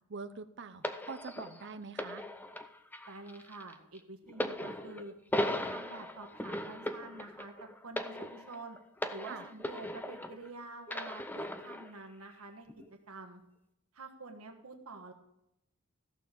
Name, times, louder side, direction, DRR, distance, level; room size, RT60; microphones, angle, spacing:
voice 1, 0.1-2.3 9.3-9.5, right 4 dB, 55° right, 10 dB, 0.7 m, -44 dB
sound 1, 0.8-10.5 10.9-11.9 12.7-12.8, left 1 dB, 10° left, 0.6 m, -38 dB
voice 2, 3.1-5.1 5.4-7.5 7.8-8.8 9.1-12.7 13.1-13.4 13.9-15.1, right 3 dB, 90° right, 3 dB, 1.5 m, -47 dB
14.5 x 6.7 x 5.3 m, 0.82 s
head